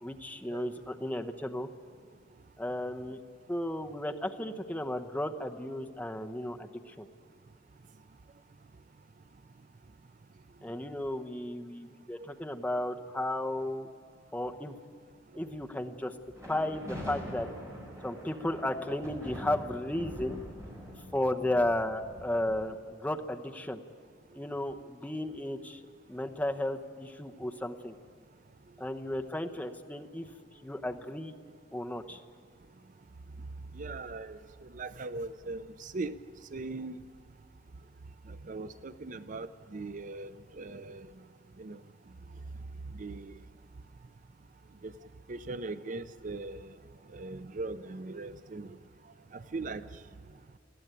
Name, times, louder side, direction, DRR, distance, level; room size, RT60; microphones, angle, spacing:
voice 1, 0.0-1.7 2.6-3.2 3.5-7.1 10.6-13.9 14.3-14.8 15.3-16.1 16.5-17.5 18.0-20.4 21.1-23.8 24.3-25.8 26.1-27.9 28.8-30.3 30.6-31.3 31.7-32.2, left 1 dB, 10° left, 4 dB, 0.9 m, -34 dB
sound 1, 16.3-22.6, equal, 15° right, 5.1 m, -44 dB
voice 2, 33.8-34.4 34.7-36.1 36.5-37.0 38.5-41.1 41.6-41.8 43.0-43.3 44.8-44.9 45.3-46.7 47.1-48.7 49.5-49.8, right 3 dB, 45° right, 12 dB, 0.5 m, -39 dB
20.5 x 14.5 x 9.1 m, 2.2 s
head